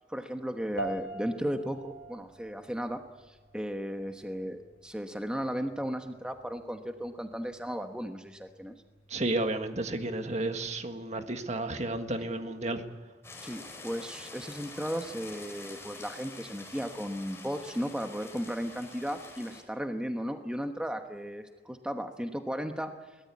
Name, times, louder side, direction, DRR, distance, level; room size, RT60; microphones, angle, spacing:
voice 1, 0.1-8.7 13.4-22.9, equal, 5° right, 5 dB, 1.1 m, -35 dB
sound 1, 0.8-10.4, equal, 60° left, 3.0 m, -46 dB
voice 2, 9.1-12.8, right 2 dB, 40° right, 6 dB, 1.7 m, -32 dB
sound 2, 13.2-19.6, left 3 dB, 15° left, 4.9 m, -47 dB
22.5 x 18.5 x 8.5 m, 1.4 s
head